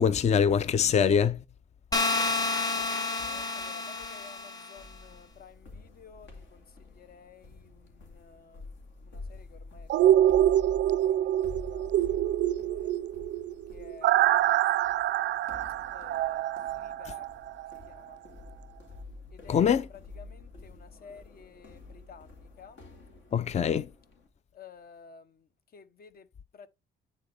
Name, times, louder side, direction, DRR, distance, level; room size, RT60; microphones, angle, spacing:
voice 1, 0.0-1.4 19.5-19.9 23.3-23.9, left 7 dB, 35° left, 0.4 m, -23 dB
voice 2, 1.9-2.4 2.9-3.8 4.1-5.5 6.0-6.3 7.0-7.5 8.1-8.6 9.3-9.4 9.7-9.9 10.4-10.5 11.7-11.9 13.7-14.2 15.9-16.4 16.8-17.2 17.9-18.2 19.4-19.7 20.2-21.8 22.1-22.3 22.6-22.7 24.6-25.2 25.7-26.2, left 6 dB, 50° left, 0.8 m, -51 dB
sound 1, 1.9-4.8, left 3 dB, 20° left, 0.9 m, -30 dB
sound 2, 4.8-24.3, left 2 dB, 70° left, 2.1 m, -48 dB
sound 3, 9.9-17.8 18.1-18.2, right 12 dB, 65° right, 0.4 m, -26 dB
9.2 x 4.1 x 3.4 m
cardioid pair, 90°, 20 cm